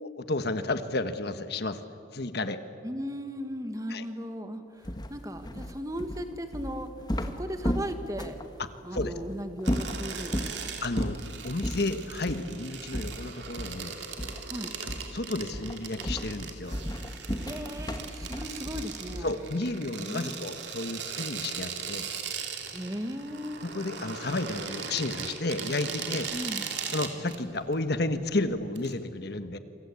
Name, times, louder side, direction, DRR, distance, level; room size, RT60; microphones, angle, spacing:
voice 1, 0.0-1.8 2.1-2.6 3.9-4.0 8.6-9.1 10.8-11.2 11.4-14.0 14.8-16.8 19.2-22.1 23.6-26.3 26.9-29.6, left 2 dB, 55° left, 10 dB, 1.3 m, -32 dB
voice 2, 2.8-6.9 7.2-8.4 8.8-10.7 14.5-14.7 17.4-19.3 20.0-20.3 22.7-23.7 26.3-26.7, equal, 15° right, 7 dB, 1.6 m, -37 dB
sound 1, 4.8-8.5 9.0-9.1 9.6-10.6 11.0-11.3 11.6-11.9 12.3-12.5 12.9-13.9 14.2-14.5 14.9-15.2 15.5-19.5, equal, 20° left, 1.4 m, -33 dB
sound 2, 9.6-28.9, right 6 dB, 60° right, 3.0 m, -39 dB
28.0 x 24.5 x 8.5 m, 2.5 s
head